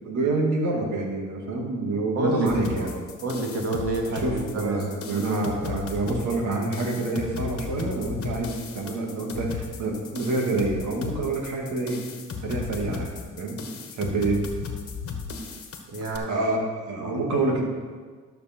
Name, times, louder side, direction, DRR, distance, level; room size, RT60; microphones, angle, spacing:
voice 1, 0.0-2.9 4.1-12.0 12.4-13.6 14.0-14.4 16.3-16.6 16.9-17.6, right 3 dB, 70° right, 0 dB, 2.2 m, -27 dB
voice 2, 2.1-2.9 3.2-5.0 15.9-16.6 17.0-17.2, right 2 dB, 55° right, 0 dB, 2.3 m, -29 dB
sound 1, 2.5-16.2, left 5 dB, 50° left, 1.4 m, -35 dB
12.0 x 6.8 x 4.4 m, 1.5 s
cardioid pair, 90°, 30 cm